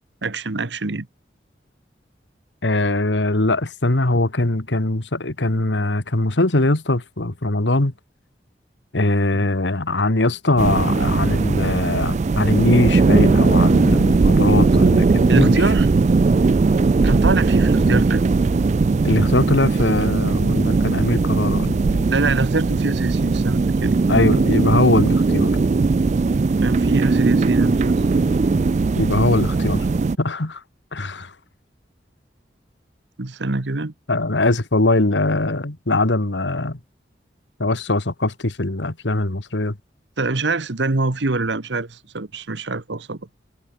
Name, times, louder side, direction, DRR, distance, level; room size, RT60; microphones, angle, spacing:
voice 1, 0.2-1.1 9.3-9.4 15.3-15.9 17.0-18.3 22.1-24.0 26.6-28.0 33.2-33.9 40.2-43.2, right 3 dB, 80° right, 1.3 m, -24 dB
voice 2, 2.6-7.9 8.9-15.6 17.9-18.0 19.0-22.1 24.1-25.5 29.0-29.8 30.2-30.6 30.9-31.3 34.1-36.8 37.6-39.8, left 2 dB, 85° left, 1.8 m, -21 dB
sound 1, 10.6-30.2, right 3 dB, 40° right, 0.4 m, -18 dB
head